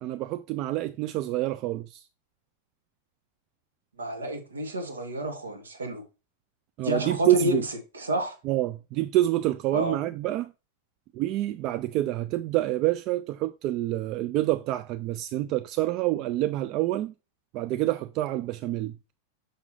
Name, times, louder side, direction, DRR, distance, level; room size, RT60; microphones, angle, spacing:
voice 1, 0.0-2.0 6.8-7.6 8.4-10.5 11.1-17.1 17.5-19.0, right 15 dB, 40° right, 0.4 m, -27 dB
voice 2, 4.0-6.0 6.8-7.6 7.9-8.4 9.7-10.0, equal, 75° right, 2.0 m, -29 dB
6.3 x 6.0 x 3.1 m
figure-of-eight pair, 90°, 0 cm